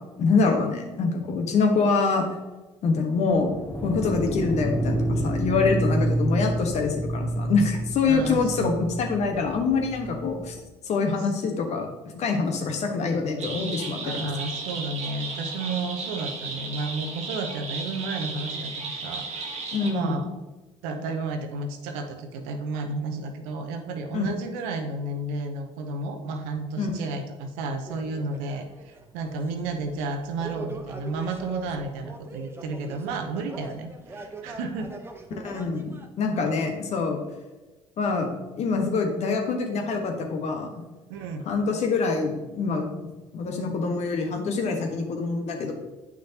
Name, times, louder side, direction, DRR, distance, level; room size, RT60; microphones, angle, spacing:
voice 1, 0.1-2.3 2.8-3.5 3.8-10.6 10.8-14.3 19.7-20.2 24.1-24.3 26.8-26.9 35.3-37.2 38.0-40.7 41.4-42.9 43.3-45.7, left 4 dB, 50° left, 3 dB, 1.3 m, -25 dB
sound 1, 3.5-10.6, right 1 dB, 10° left, 0.8 m, -29 dB
voice 2, 8.1-8.8 14.0-19.5 19.9-20.3 20.8-34.9 41.1-41.4, right 3 dB, 70° right, 5 dB, 0.9 m, -32 dB
sound 2, 13.4-19.9, right 4 dB, 50° right, 1.3 m, -34 dB
sound 3, 27.9-36.1, right 3 dB, 15° right, 0.9 m, -42 dB
8.6 x 6.0 x 2.9 m, 1.1 s
hypercardioid pair, 55°, 14 cm